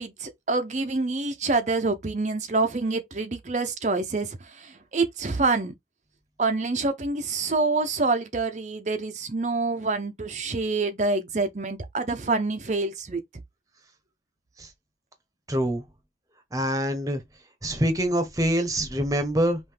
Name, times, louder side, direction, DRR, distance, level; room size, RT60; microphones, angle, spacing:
voice 1, 0.0-5.7 6.4-13.2, right 3 dB, 40° right, 0.7 m, -26 dB
voice 2, 15.5-15.8 16.5-17.2 17.6-19.6, equal, 20° right, 1.0 m, -25 dB
5.6 x 2.6 x 3.4 m
head